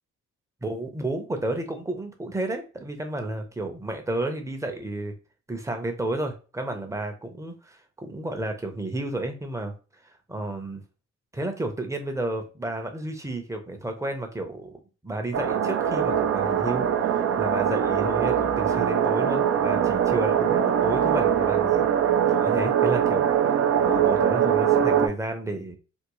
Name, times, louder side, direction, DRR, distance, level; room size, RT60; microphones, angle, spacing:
voice 1, 0.6-5.1 5.5-9.7 10.3-10.8 11.3-21.9 22.3-25.8, right 2 dB, 10° right, 5 dB, 0.7 m, -31 dB
sound 1, 15.3-25.1, right 8 dB, 50° right, 0.5 m, -22 dB
3.5 x 2.3 x 3.0 m, 0.34 s
cardioid pair, 90°, 30 cm